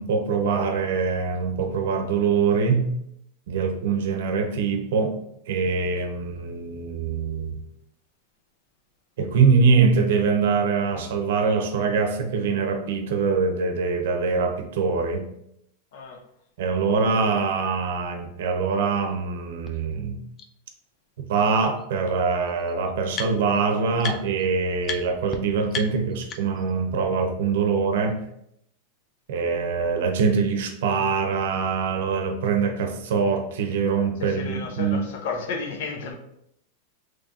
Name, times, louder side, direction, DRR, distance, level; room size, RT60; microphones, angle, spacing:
voice 1, 0.0-2.9 3.5-5.1 5.5-7.6 9.2-15.3 16.6-20.2 21.3-28.2 29.3-35.0, right 5 dB, 75° right, 0.7 m, -23 dB
voice 2, 15.9-16.2 34.2-36.2, left 4 dB, 65° left, 0.7 m, -32 dB
sound 1, 19.7-19.8 20.4-20.5 21.8-21.9 22.1-23.6 24.0-24.4 24.8-25.0 25.3-25.4 25.7-26.7, left 5 dB, 25° left, 0.3 m, -35 dB
3.1 x 2.4 x 4.0 m
supercardioid pair, 145°, 0 cm